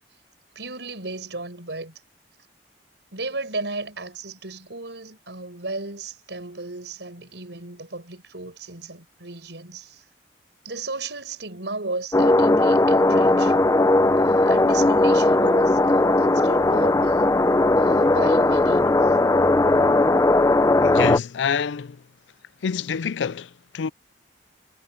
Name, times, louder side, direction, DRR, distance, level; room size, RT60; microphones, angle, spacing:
voice 1, 0.6-2.0 3.1-10.0 10.6-13.6 14.1-17.3 17.8-19.2, right 3 dB, 80° right, 5.9 m, -35 dB
sound 1, 12.1-21.2, left 2 dB, 20° left, 0.6 m, -18 dB
voice 2, 20.8-22.0 22.6-23.9, left 6 dB, 90° left, 0.4 m, -27 dB
head